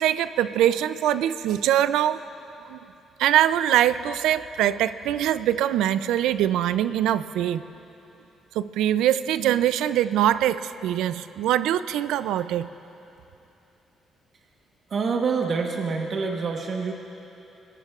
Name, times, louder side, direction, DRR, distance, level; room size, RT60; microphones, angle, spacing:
voice 1, 0.0-2.2 2.6-2.8 3.2-7.6 8.5-12.7, right 11 dB, 90° right, 14 dB, 0.4 m, -23 dB
voice 2, 14.9-16.9, right 5 dB, 50° right, 1 dB, 1.2 m, -26 dB
25.0 x 21.0 x 2.4 m, 3.0 s
cardioid pair, 90°, 0 cm